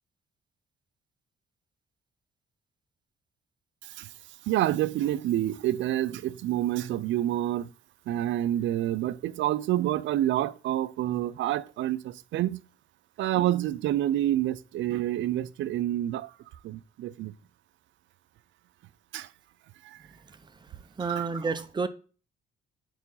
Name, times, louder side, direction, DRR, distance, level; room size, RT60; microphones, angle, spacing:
voice 1, 4.5-7.7 8.1-12.6 13.2-16.3 16.6-17.3 19.1-19.3 21.0-21.4, right 13 dB, 75° right, 0.4 m, -28 dB
voice 2, 21.0-21.9, right 4 dB, 20° right, 0.7 m, -29 dB
4.9 x 4.6 x 5.4 m
cardioid pair, 90°, 20 cm